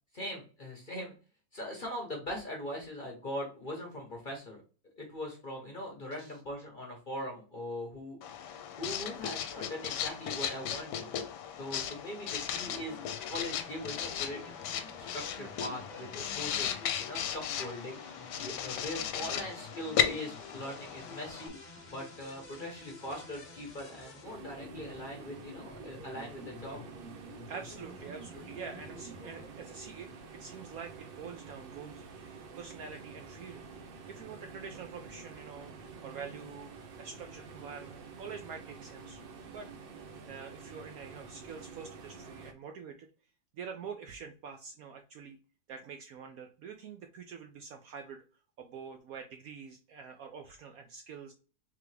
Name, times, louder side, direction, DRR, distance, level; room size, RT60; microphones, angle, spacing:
voice 1, 0.1-1.1 1.5-4.6 5.0-8.2 8.8-11.2 11.6-13.0 13.3-14.6 15.0-18.0 18.4-21.6 21.9-26.8, left 1 dB, 35° left, 1 dB, 0.9 m, -41 dB
Writing, 8.2-21.5, left 9 dB, 75° left, 1.2 m, -36 dB
sound 1, 12.6-29.5, left 3 dB, 50° left, 0.5 m, -50 dB
sound 2, 24.2-42.5, right 4 dB, 90° right, 0.4 m, -49 dB
voice 2, 27.5-33.6 34.1-36.7 37.0-39.2 39.5-39.7 40.3-43.1 43.5-45.4 45.7-48.2 48.6-51.3, right 6 dB, 70° right, 5 dB, 0.9 m, -46 dB
3.7 x 3.4 x 3.2 m, 0.36 s
omnidirectional pair, 1.9 m